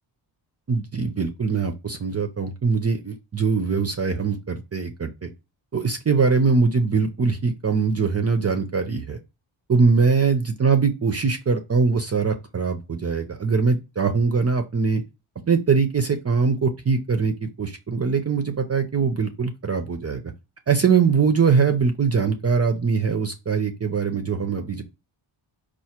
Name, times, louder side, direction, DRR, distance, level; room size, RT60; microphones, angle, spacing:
voice 1, 0.7-5.3 5.7-9.2 9.7-15.0 15.5-20.3 20.7-24.8, right 5 dB, 30° right, 0.6 m, -22 dB
4.7 x 2.5 x 4.3 m
wide cardioid pair, 115°, 48 cm